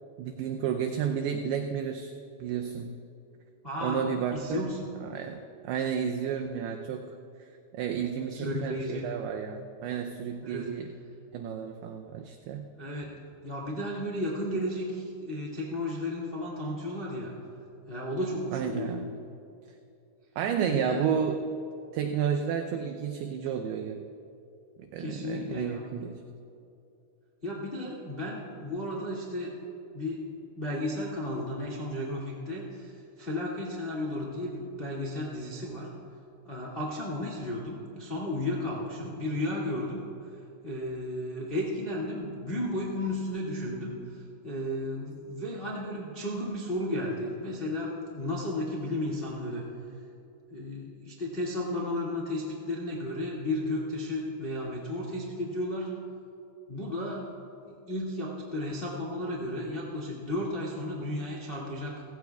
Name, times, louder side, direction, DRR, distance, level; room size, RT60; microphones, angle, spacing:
voice 1, 0.2-2.1 2.4-3.0 3.8-4.7 5.0-10.9 11.3-12.7 18.5-19.1 20.4-21.4 21.9-24.2 24.8-26.2, right 7 dB, 80° right, 4 dB, 2.4 m, -32 dB
voice 2, 3.6-4.0 4.3-4.8 8.3-9.0 10.4-10.7 12.8-13.1 13.4-17.3 17.9-18.9 20.7-21.0 25.0-25.8 27.4-29.5 29.9-30.2 30.5-35.9 36.4-40.0 40.6-49.6 50.5-55.9 56.7-57.3 57.7-62.0, left 1 dB, 90° left, -4 dB, 0.5 m, -33 dB
29.0 x 16.5 x 2.3 m, 2.7 s
omnidirectional pair, 5.1 m